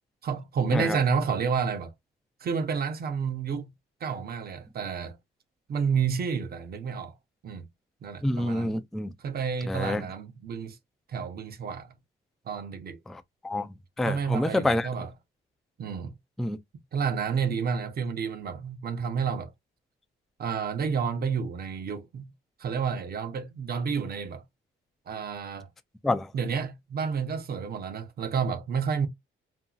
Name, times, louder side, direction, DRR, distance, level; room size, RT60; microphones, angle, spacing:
voice 1, 0.2-1.9 2.4-3.7 4.0-5.2 5.7-7.1 7.4-7.6 8.0-8.8 9.2-10.8 11.1-11.9 12.5-13.0 14.0-15.1 15.8-16.1 16.9-19.5 20.4-22.3 22.6-24.4 25.1-25.7 26.3-29.1, right 6 dB, 50° right, 0.7 m, -30 dB
voice 2, 8.2-9.1 9.7-10.0 13.1-14.9 16.4-16.6 26.0-26.3, left 1 dB, ahead, 0.3 m, -28 dB
2.7 x 2.7 x 2.3 m
cardioid pair, 90°, 20 cm